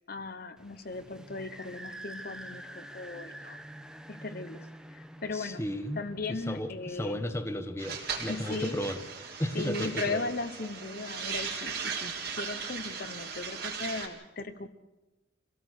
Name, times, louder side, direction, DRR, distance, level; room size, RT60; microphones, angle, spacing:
voice 1, 0.1-3.6 4.1-4.7 4.9-5.6 5.9-7.2 8.3-8.8 9.5-14.7, left 3 dB, 50° left, 9 dB, 1.0 m, -37 dB
sound 1, 0.6-7.9, right 1 dB, 5° right, 0.8 m, -47 dB
voice 2, 5.3-6.0 6.3-9.0 9.4-10.3, equal, 15° left, 8 dB, 1.1 m, -34 dB
sound 2, 7.8-14.1, right 5 dB, 50° right, 3.5 m, -37 dB
25.5 x 17.5 x 6.5 m, 1.1 s
head